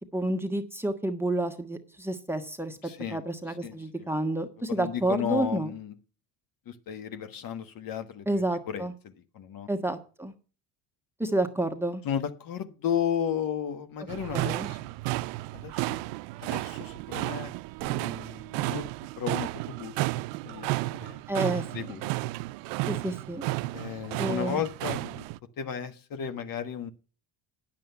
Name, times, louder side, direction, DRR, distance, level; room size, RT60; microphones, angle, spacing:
voice 1, 0.1-2.8 3.1-5.7 8.3-8.9 9.7-10.3 11.2-12.0 14.3-14.7 21.3-21.6 22.9-23.4 24.2-24.6, right 1 dB, 5° right, 1.4 m, -29 dB
voice 2, 2.8-4.1 4.7-5.9 6.6-9.7 12.0-14.9 15.5-16.1 16.4-17.5 17.8-18.9 19.2-20.0 20.4-21.2 21.7-22.1 23.7-25.3 25.6-26.9, left 8 dB, 50° left, 1.4 m, -34 dB
sound 1, 14.1-25.4, right 20 dB, 75° right, 0.5 m, -33 dB
9.4 x 7.4 x 6.9 m
supercardioid pair, 95°, 44 cm